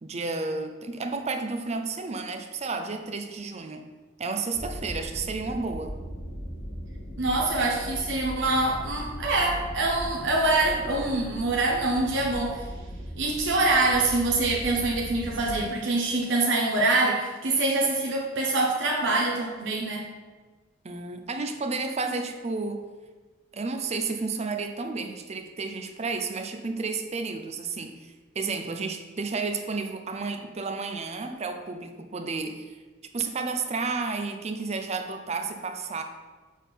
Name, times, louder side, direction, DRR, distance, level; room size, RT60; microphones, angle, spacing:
voice 1, 0.0-3.9 4.2-5.9 20.8-22.8 23.5-32.8 33.1-36.0, right 4 dB, 35° right, 6 dB, 0.5 m, -32 dB
sound 1, 4.5-15.6, equal, 75° left, 1.9 m, -38 dB
voice 2, 7.2-12.7 13.2-20.0, right 2 dB, 65° right, -2 dB, 0.9 m, -25 dB
6.3 x 3.6 x 5.8 m, 1.3 s
head